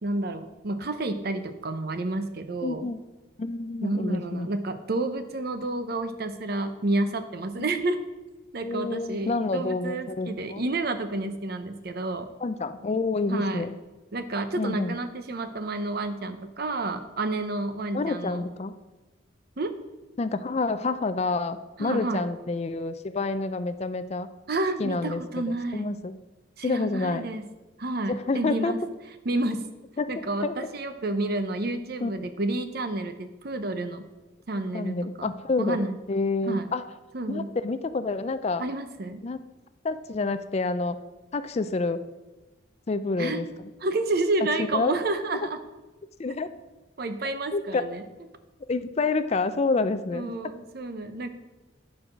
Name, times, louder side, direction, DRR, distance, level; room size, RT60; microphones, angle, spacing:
voice 1, 0.0-2.8 3.8-8.0 8.5-12.3 13.3-13.6 14.1-18.4 19.6-19.8 21.8-22.2 24.5-25.9 26.6-27.4 27.8-28.8 29.2-29.7 30.1-34.0 34.5-35.3 35.6-36.0 36.4-36.7 37.1-37.5 38.6-39.2 43.2-43.4 43.8-45.6 47.0-48.0 50.1-51.3, right 2 dB, 55° right, 9 dB, 0.7 m, -30 dB
voice 2, 2.6-3.0 3.4-4.5 7.6-7.7 8.6-10.6 12.4-13.8 14.6-14.9 17.9-18.7 20.2-24.3 24.8-26.1 26.6-27.3 28.1-28.7 30.0-30.1 30.4-30.5 32.0-32.1 34.5-36.8 37.3-38.6 39.2-39.4 39.8-41.0 41.3-42.0 42.9-43.5 44.6-44.9 46.2-46.5 47.5-47.8 48.7-50.3, left 3 dB, 35° left, 12 dB, 0.4 m, -28 dB
9.9 x 4.8 x 6.1 m, 1.1 s
head